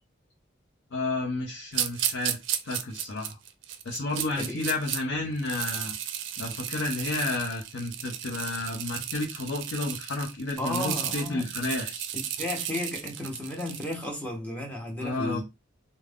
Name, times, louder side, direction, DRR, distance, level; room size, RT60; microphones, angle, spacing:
voice 1, 0.9-2.4 2.6-3.4 3.8-6.0 6.4-12.1 15.0-15.4, left 2 dB, 80° left, 0.6 m, -31 dB
sound 1, 1.7-5.0 5.4-14.0, right 10 dB, 65° right, 0.4 m, -34 dB
voice 2, 4.4-4.7 10.6-11.5 12.1-15.4, left 1 dB, 10° left, 0.7 m, -34 dB
2.4 x 2.1 x 3.3 m
head